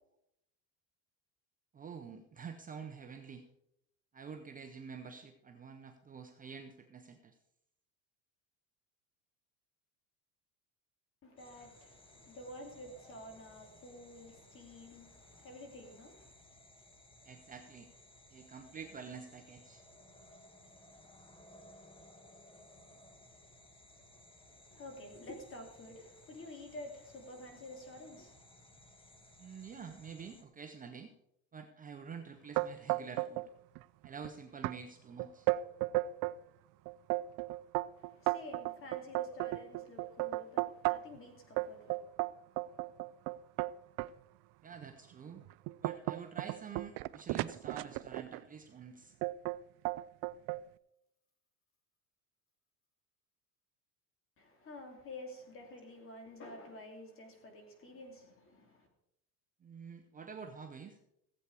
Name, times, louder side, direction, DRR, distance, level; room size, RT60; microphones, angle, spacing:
voice 1, 1.7-3.5 4.1-7.4 13.0-13.1 17.2-17.9 18.3-19.8 29.4-31.1 31.5-33.5 34.0-35.5 44.6-45.4 45.8-49.1 55.7-55.8 59.6-61.0, right 6 dB, 20° right, 0.7 m, -48 dB
voice 2, 11.2-16.3 24.7-28.3 38.0-42.0 54.4-58.9, left 1 dB, 35° left, 2.7 m, -50 dB
sound 1, 11.4-30.4, left 1 dB, 15° left, 1.3 m, -60 dB
sound 2, 32.5-33.5 33.7-34.3 34.6-34.8 35.2-36.4 36.8-41.2 41.6-44.1 44.7-44.9 45.3-48.4 49.2-49.6 49.8-50.6, right 18 dB, 55° right, 0.5 m, -34 dB
15.5 x 8.2 x 4.7 m
cardioid pair, 145°, 39 cm